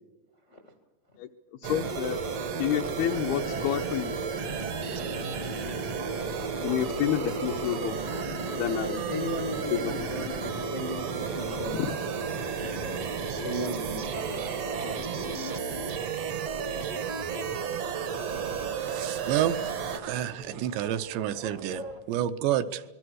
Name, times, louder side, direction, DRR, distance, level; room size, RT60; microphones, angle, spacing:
voice 1, 1.6-2.2 2.6-4.2 6.6-8.2 8.5-9.0 9.7-10.3 11.7-12.0, left 10 dB, 75° left, 2 dB, 2.5 m, -29 dB
sound 1, 1.6-20.0, right 5 dB, 60° right, 1.6 m, -33 dB
sound 2, 2.8-22.0, right 2 dB, 40° right, 0.6 m, -43 dB
voice 2, 8.8-11.7 13.4-14.0, left 1 dB, 55° left, 6 dB, 0.8 m, -35 dB
voice 3, 18.9-19.6 19.9-22.8, right 11 dB, 80° right, 10 dB, 3.0 m, -29 dB
26.5 x 21.5 x 6.4 m, 1.2 s
omnidirectional pair, 5.2 m